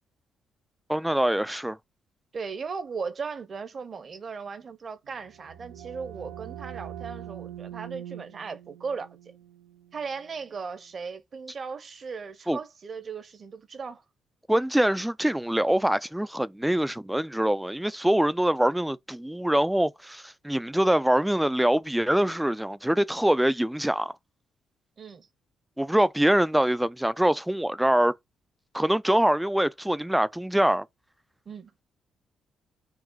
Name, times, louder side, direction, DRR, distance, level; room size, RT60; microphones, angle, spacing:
voice 1, 0.9-1.8 12.5-12.6 14.5-24.1 25.8-28.1 28.7-30.9, right 1 dB, 5° right, 0.3 m, -24 dB
voice 2, 2.3-9.1 9.9-14.0 25.0-25.3 31.5-31.7, right 5 dB, 45° right, 0.8 m, -37 dB
sound 1, 5.1-10.7, right 11 dB, 80° right, 0.5 m, -43 dB
4.7 x 2.0 x 3.8 m
cardioid pair, 90°, 0 cm